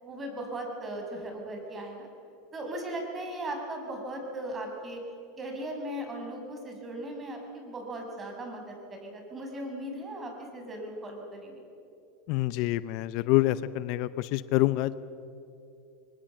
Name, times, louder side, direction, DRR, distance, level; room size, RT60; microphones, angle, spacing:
voice 1, 0.0-2.1 2.5-5.0 5.4-11.6, right 1 dB, 25° right, 2 dB, 6.1 m, -38 dB
voice 2, 12.3-14.9, left 17 dB, 60° left, 16 dB, 0.6 m, -26 dB
24.0 x 20.5 x 7.6 m, 2.7 s
supercardioid pair, 110°, 0 cm